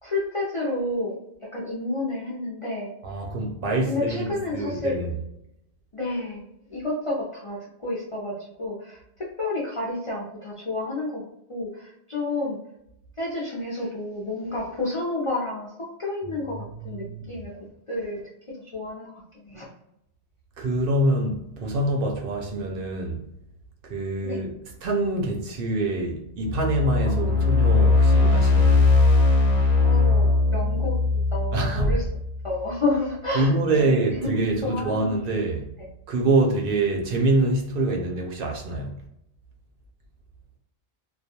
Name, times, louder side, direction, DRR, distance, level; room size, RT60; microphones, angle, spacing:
voice 1, 0.0-2.9 3.9-5.0 5.9-12.6 13.2-17.5 17.9-18.2 18.5-19.7 24.2-24.4 27.0-27.4 29.8-31.0 31.3-32.1 32.4-35.1, left 2 dB, 45° left, 0.4 m, -30 dB
voice 2, 3.0-5.1 16.3-16.5 16.9-17.3 20.6-23.2 23.8-24.5 24.8-28.8 31.5-31.9 33.3-35.7 36.1-39.0, right 2 dB, 65° right, 0.7 m, -25 dB
sound 1, 26.4-32.6, left 3 dB, 90° left, 0.9 m, -20 dB
2.3 x 2.2 x 2.7 m
omnidirectional pair, 1.1 m